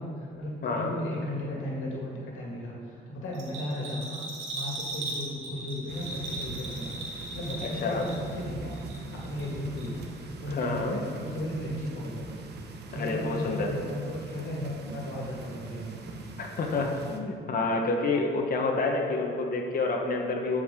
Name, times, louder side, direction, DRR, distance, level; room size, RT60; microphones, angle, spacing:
voice 1, 0.0-4.2 4.5-12.3 12.9-15.9, left 1 dB, 85° left, -3 dB, 1.8 m, -35 dB
voice 2, 0.6-1.0 7.6-8.1 10.5-11.0 12.9-13.7 16.4-20.6, left 3 dB, 45° left, 1 dB, 1.0 m, -28 dB
Bell, 3.3-8.4 8.7-9.5 9.8-9.9, right 2 dB, 80° right, 2.0 m, -37 dB
sound 1, 5.9-17.2, right 4 dB, 55° right, 0.8 m, -42 dB
13.0 x 4.9 x 3.7 m, 2.2 s
cardioid pair, 90°, 20 cm